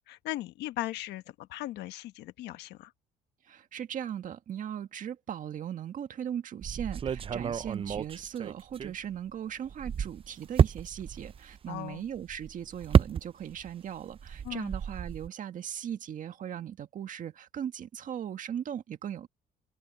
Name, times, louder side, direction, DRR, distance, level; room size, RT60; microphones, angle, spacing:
voice 1, 0.1-2.9 11.7-12.0 14.4-14.7, left 16 dB, 80° left, 1.2 m, -38 dB
voice 2, 3.4-19.3, right 9 dB, 50° right, 1.8 m, -38 dB
sound 1, 6.6-9.3 9.7-13.7 14.0-15.3, right 8 dB, 35° right, 0.6 m, -30 dB
cardioid pair, 110°, 17 cm